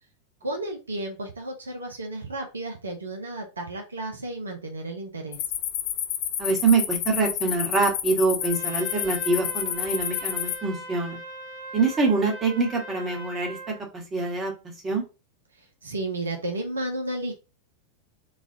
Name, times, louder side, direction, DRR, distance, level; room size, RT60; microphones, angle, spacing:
voice 1, 0.4-5.4 15.8-17.3, right 1 dB, 75° right, 3 dB, 0.6 m, -32 dB
sound 1, 5.3-10.6, left 11 dB, 45° left, 0.3 m, -30 dB
voice 2, 6.4-11.2 11.7-13.6 13.9-14.5 14.8-15.0, right 3 dB, 20° right, 1 dB, 1.1 m, -25 dB
Trumpet, 8.4-13.8, right 1 dB, 55° right, 0.9 m, -40 dB
3.1 x 2.4 x 2.6 m, 0.30 s
figure-of-eight pair, 90°, 0 cm